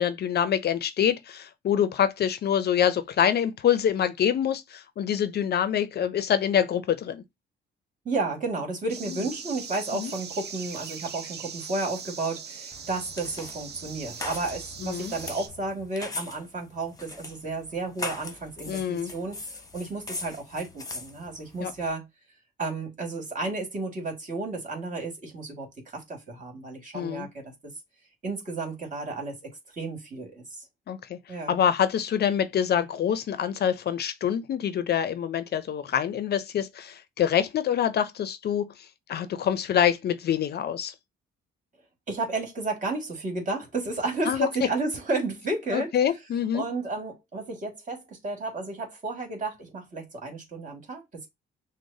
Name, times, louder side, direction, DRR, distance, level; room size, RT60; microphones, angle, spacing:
voice 1, 0.0-7.2 9.1-9.2 9.9-10.1 14.8-15.1 18.7-19.1 21.6-21.7 26.9-27.3 30.9-31.2 31.5-40.9 44.3-44.5 45.7-46.6, left 9 dB, 55° left, 0.5 m, -26 dB
voice 2, 8.1-22.1 22.6-25.7 25.9-27.7 28.2-30.6 31.3-31.5 42.1-45.9 46.5-51.3, right 3 dB, 40° right, 1.9 m, -32 dB
sound 1, 8.9-15.5, right 6 dB, 55° right, 0.8 m, -40 dB
sound 2, 12.7-21.9, left 2 dB, 15° left, 1.0 m, -40 dB
6.1 x 2.1 x 2.7 m
cardioid pair, 90°, 20 cm